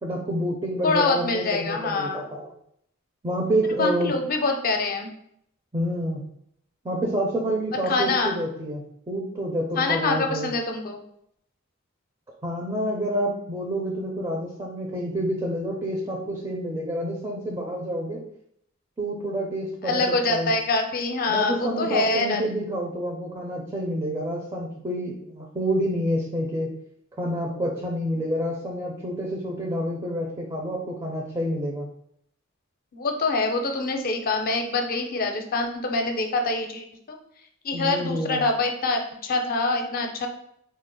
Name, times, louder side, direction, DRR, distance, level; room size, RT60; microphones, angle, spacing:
voice 1, 0.0-2.5 3.2-4.1 5.7-6.2 6.8-10.5 12.4-18.2 19.0-20.5 21.3-26.8 27.2-31.9 37.7-38.4, equal, 20° right, -1 dB, 0.5 m, -28 dB
voice 2, 0.8-2.2 3.8-5.1 7.7-8.3 9.8-11.0 19.8-22.4 32.9-37.2 37.6-40.3, left 3 dB, 45° left, 4 dB, 0.5 m, -25 dB
4.1 x 2.0 x 3.7 m, 0.71 s
head